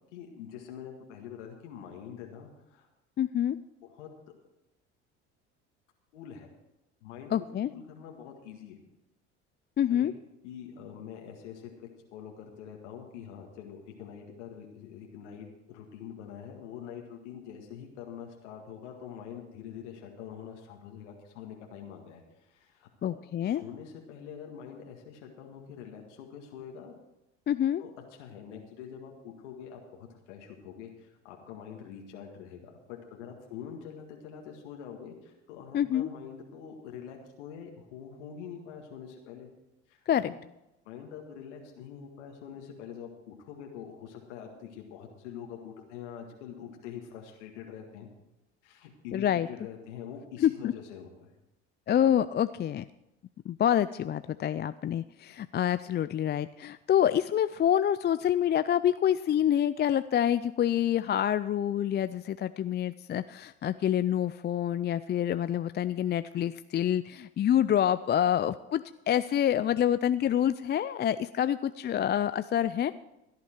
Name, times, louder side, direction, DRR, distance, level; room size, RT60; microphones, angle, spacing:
voice 1, 0.1-2.9 3.8-4.1 6.1-6.5 7.0-7.3 7.7-8.8 9.9-10.1 10.4-23.2 23.5-26.9 27.8-39.5 39.9-40.4 40.9-48.1 48.6-51.3, left 8 dB, 80° left, 1 dB, 1.9 m, -45 dB
voice 2, 3.2-3.6 7.3-7.7 9.8-10.1 23.0-23.6 27.5-27.8 35.7-36.1 40.1-40.3 49.1-49.5 50.4-50.7 51.9-52.8 53.5-72.9, left 10 dB, 30° left, 13 dB, 0.4 m, -27 dB
16.5 x 10.5 x 4.5 m, 0.92 s
hypercardioid pair, 70°, 35 cm